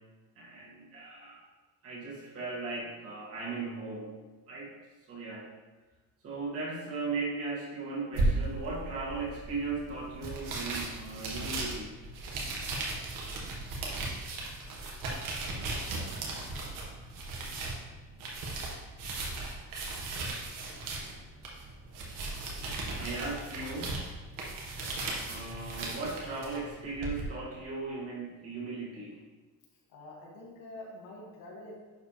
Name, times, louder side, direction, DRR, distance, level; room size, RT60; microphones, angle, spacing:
voice 1, 0.4-1.5 1.8-4.2 4.5-4.7 5.1-5.5 6.2-11.9 22.7-24.0 25.3-29.2, right 3 dB, 45° right, -5 dB, 2.4 m, -37 dB
sound 1, 8.1-27.2, right 2 dB, 70° right, 1.8 m, -36 dB
voice 2, 29.9-31.8, left 1 dB, 80° left, -3 dB, 2.5 m, -46 dB
10.5 x 4.9 x 3.4 m, 1.3 s
cardioid pair, 175°, 34 cm